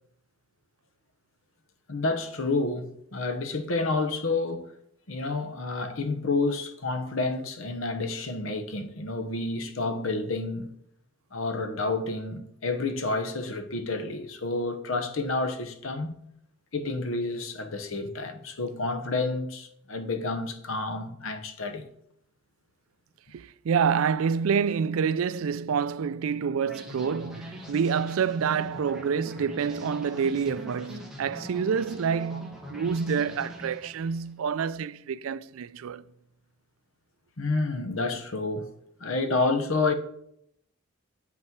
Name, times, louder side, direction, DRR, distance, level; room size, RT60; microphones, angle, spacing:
voice 1, 1.9-4.7 5.1-10.7 11.3-16.2 16.7-21.9 37.4-38.7 39.0-39.9, left 3 dB, 80° left, 1.0 m, -29 dB
voice 2, 23.3-36.0, right 6 dB, 85° right, 0.4 m, -27 dB
sound 1, 26.6-34.3, left 1 dB, 5° right, 1.4 m, -43 dB
7.6 x 5.9 x 4.6 m
head